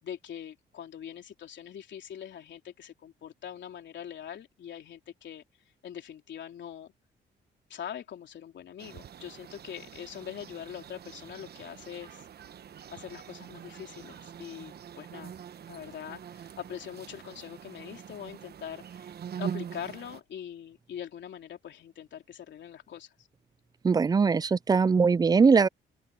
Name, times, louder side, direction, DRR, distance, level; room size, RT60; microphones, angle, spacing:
voice 1, 0.0-5.4 5.8-6.9 7.7-12.3 12.9-15.3 15.7-19.1 19.4-23.3, left 9 dB, 65° left, 3.5 m, -43 dB
sound 1, 8.8-20.2, right 8 dB, 55° right, 1.1 m, -43 dB
voice 2, 23.8-25.7, right 5 dB, 20° right, 0.4 m, -21 dB
open air
cardioid pair, 90°, 20 cm